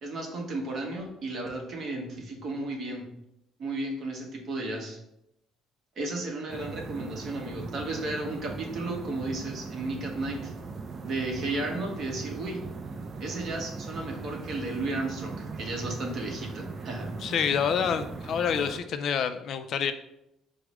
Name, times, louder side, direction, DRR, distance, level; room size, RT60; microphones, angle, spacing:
voice 1, 0.0-3.0 3.6-5.0 6.0-10.5 11.0-12.6 13.2-17.1, right 2 dB, 50° right, 0 dB, 1.0 m, -34 dB
sound 1, 6.5-18.8, right 4 dB, 35° right, 0.4 m, -39 dB
voice 2, 17.2-19.9, left 7 dB, 50° left, 9 dB, 0.3 m, -27 dB
4.7 x 2.1 x 4.7 m, 0.81 s
cardioid pair, 145°, 0 cm